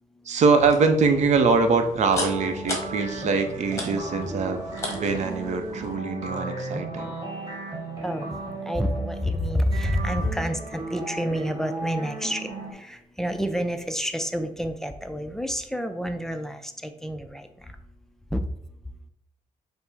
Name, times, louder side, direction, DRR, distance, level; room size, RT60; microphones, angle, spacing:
voice 1, 0.2-4.6 4.9-7.2, right 4 dB, 55° right, 7 dB, 0.6 m, -23 dB
sound 1, 0.6-5.9, left 2 dB, 20° left, 1.0 m, -37 dB
sound 2, 2.0-12.7, right 2 dB, 30° right, 1.8 m, -35 dB
voice 2, 8.0-17.7 18.3-18.4, equal, 5° left, 7 dB, 0.3 m, -29 dB
5.3 x 2.0 x 4.7 m, 0.78 s
cardioid pair, 125°, 14 cm